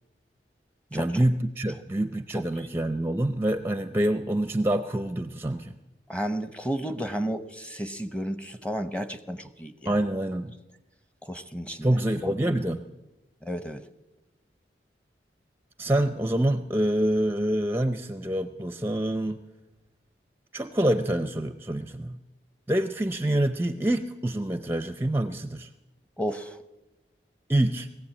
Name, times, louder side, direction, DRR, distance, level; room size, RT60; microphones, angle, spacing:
voice 1, 0.9-5.7 9.9-10.5 11.8-12.8 15.8-19.4 20.5-22.2 22.7-25.7 27.5-27.9, right 1 dB, 15° right, 8 dB, 0.6 m, -26 dB
voice 2, 6.1-10.0 11.3-12.0 12.2-12.6 13.4-13.8 26.2-26.6, equal, 5° left, 10 dB, 1.0 m, -32 dB
21.0 x 15.5 x 8.6 m, 1.1 s
head